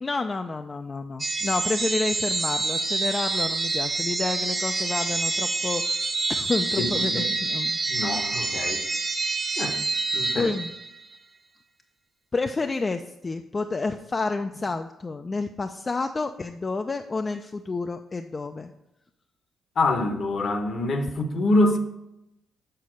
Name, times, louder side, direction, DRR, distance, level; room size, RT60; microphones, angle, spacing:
voice 1, 0.0-6.0 6.3-7.8 10.3-10.7 12.3-18.7, left 3 dB, 30° left, 7 dB, 0.4 m, -29 dB
sound 1, 1.2-11.0, right 3 dB, 25° right, 0.7 m, -27 dB
voice 2, 6.8-7.3 7.9-8.8 9.6-9.8 10.1-10.5 19.8-21.8, left 2 dB, 55° left, 7 dB, 1.0 m, -25 dB
6.7 x 4.1 x 6.1 m, 0.88 s
cardioid pair, 80°, 0 cm